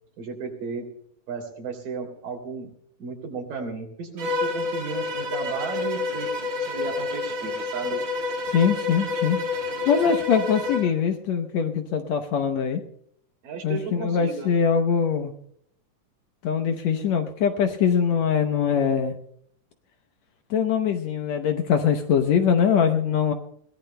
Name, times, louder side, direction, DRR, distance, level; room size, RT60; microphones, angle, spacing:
voice 1, 0.2-0.9 1.3-2.7 3.0-8.0 13.4-14.5, right 4 dB, 80° right, 3 dB, 4.6 m, -34 dB
Bowed string instrument, 4.2-10.9, left 3 dB, 35° right, 2.1 m, -29 dB
voice 2, 8.5-9.4 9.8-12.8 13.6-15.3 16.4-19.1 20.5-23.3, left 7 dB, 70° left, 6 dB, 1.8 m, -22 dB
22.0 x 18.5 x 2.2 m, 0.70 s
omnidirectional pair, 3.9 m